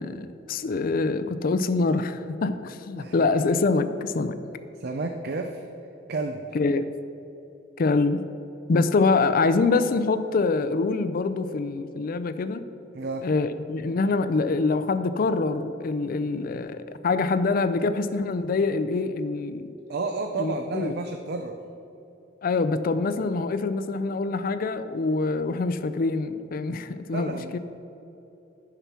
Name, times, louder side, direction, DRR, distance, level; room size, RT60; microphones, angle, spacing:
voice 1, 0.0-4.4 6.5-6.9 7.8-8.2 8.7-12.7 13.2-19.7 20.4-21.0 22.4-27.6, left 3 dB, 50° left, 12 dB, 0.4 m, -25 dB
voice 2, 4.8-5.6 6.1-6.4 12.9-13.3 19.9-21.6 27.1-27.6, right 3 dB, 60° right, 5 dB, 0.5 m, -31 dB
10.0 x 5.8 x 5.9 m, 3.0 s
head